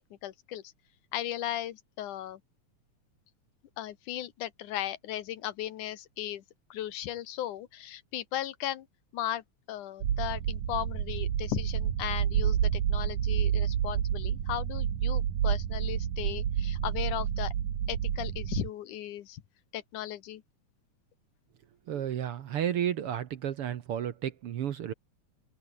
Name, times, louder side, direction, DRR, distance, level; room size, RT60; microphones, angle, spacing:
voice 1, 0.1-0.6 1.1-2.4 3.8-6.4 6.7-8.9 9.1-17.5 17.9-19.4 19.7-20.4, left 12 dB, 85° left, 2.8 m, -36 dB
sound 1, 10.0-18.7, right 9 dB, 85° right, 3.6 m, -29 dB
voice 2, 21.9-24.9, right 10 dB, 60° right, 1.6 m, -32 dB
open air
omnidirectional pair, 3.5 m